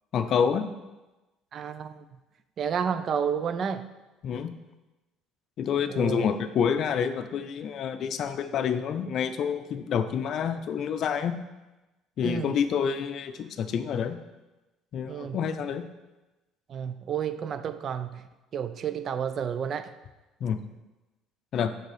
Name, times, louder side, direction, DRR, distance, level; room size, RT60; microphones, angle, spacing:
voice 1, 0.1-0.7 4.2-4.5 5.6-11.4 12.2-14.2 14.9-15.9 20.4-20.6 21.5-21.7, left 7 dB, 55° left, 10 dB, 0.5 m, -28 dB
voice 2, 1.5-2.0 2.6-3.8 5.9-6.3 12.2-12.5 15.1-15.4 16.7-18.2 18.5-19.9, right 7 dB, 45° right, 12 dB, 0.4 m, -30 dB
6.6 x 4.0 x 4.9 m, 1.1 s
cardioid pair, 110°, 0 cm